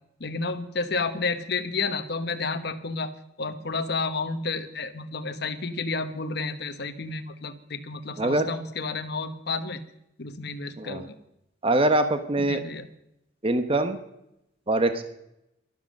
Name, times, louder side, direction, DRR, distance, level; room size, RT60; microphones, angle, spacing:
voice 1, 0.2-3.1 3.4-9.8 10.2-11.2 12.4-12.9, left 4 dB, 60° left, 8 dB, 1.1 m, -31 dB
voice 2, 8.2-8.5 10.8-11.0 11.6-12.6 13.4-14.0 14.7-15.0, right 2 dB, 30° right, 9 dB, 1.0 m, -23 dB
13.0 x 12.0 x 6.5 m, 0.81 s
head